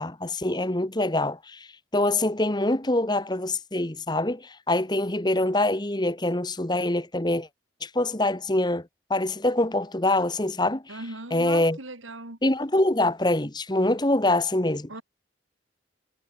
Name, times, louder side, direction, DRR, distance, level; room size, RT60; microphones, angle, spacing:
voice 1, 0.0-1.7 1.9-7.5 7.8-11.0 11.3-11.8 12.4-14.9, left 1 dB, 20° left, 1.4 m, -25 dB
voice 2, 10.9-12.4 14.9-15.0, right 2 dB, 85° right, 4.3 m, -38 dB
head